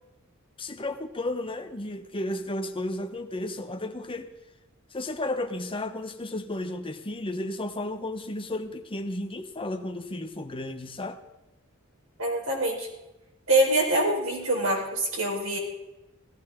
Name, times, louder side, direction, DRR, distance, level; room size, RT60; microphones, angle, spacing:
voice 1, 0.6-4.3 4.9-11.2, left 1 dB, 25° left, 7 dB, 1.1 m, -33 dB
voice 2, 12.2-12.9 13.5-15.6, right 1 dB, 80° right, -1 dB, 4.6 m, -24 dB
17.5 x 14.0 x 3.8 m, 0.95 s
head